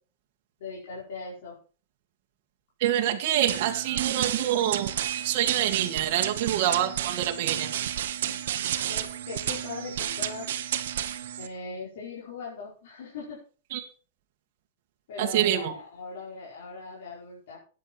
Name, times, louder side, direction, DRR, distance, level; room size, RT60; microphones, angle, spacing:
voice 1, 0.6-1.5 8.2-8.4 8.9-10.5 11.4-13.4 15.1-17.6, left 4 dB, 65° left, -5 dB, 5.1 m, -39 dB
voice 2, 2.8-4.9 5.2-7.7 13.7-13.9 15.2-15.7, right 11 dB, 45° right, 2 dB, 2.0 m, -26 dB
sound 1, 3.5-11.5, right 10 dB, 70° right, 1.4 m, -31 dB
14.0 x 9.8 x 4.6 m, 0.38 s
supercardioid pair, 175°, 0 cm